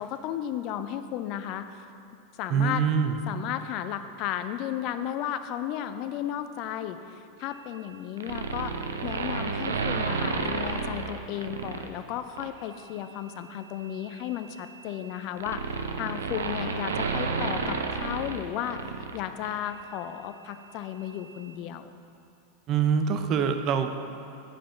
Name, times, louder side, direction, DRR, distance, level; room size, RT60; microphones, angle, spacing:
voice 1, 0.0-1.7 2.4-2.8 3.3-7.0 7.4-8.7 9.0-15.7 16.0-18.8 19.1-21.9, left 11 dB, 50° left, 10 dB, 0.5 m, -34 dB
voice 2, 2.5-3.2 22.7-24.0, right 7 dB, 40° right, 7 dB, 0.6 m, -24 dB
sound 1, 8.2-11.9 12.4-12.6 13.8-19.2 19.4-19.5, right 4 dB, 80° right, 0.6 m, -31 dB
8.8 x 5.0 x 5.7 m, 2.6 s
hypercardioid pair, 90°, 0 cm